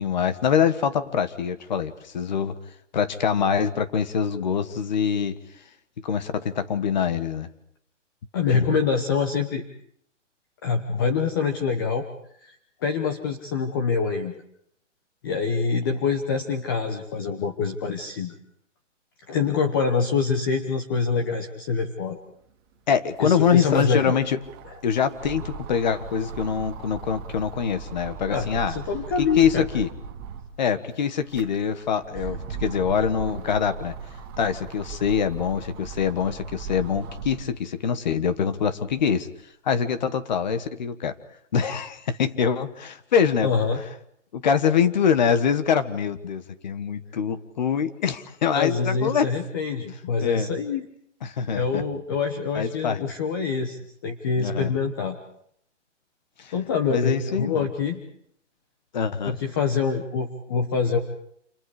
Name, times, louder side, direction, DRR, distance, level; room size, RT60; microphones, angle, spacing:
voice 1, 0.0-2.5 2.9-5.4 6.0-7.5 8.5-8.7 22.9-24.4 24.8-28.7 29.2-29.9 30.6-33.9 34.4-39.3 39.6-41.1 41.5-43.5 44.3-49.3 50.2-50.5 51.2-51.8 52.5-53.0 54.4-54.7 56.4-56.5 56.9-57.7 58.9-59.4, left 7 dB, 35° left, 11 dB, 1.6 m, -24 dB
voice 2, 8.3-9.6 10.6-12.0 12.4-14.3 15.2-18.4 19.3-22.2 23.2-24.1 24.6-24.7 28.3-29.7 43.4-43.8 48.5-50.9 51.5-55.2 56.5-58.0 59.2-61.0, left 5 dB, 20° left, 5 dB, 1.0 m, -25 dB
sound 1, 22.4-22.5 22.8-30.6 31.1-37.6 38.1-39.2, right 6 dB, 20° right, 1.7 m, -38 dB
29.5 x 28.0 x 5.0 m, 0.71 s
hypercardioid pair, 175°, 37 cm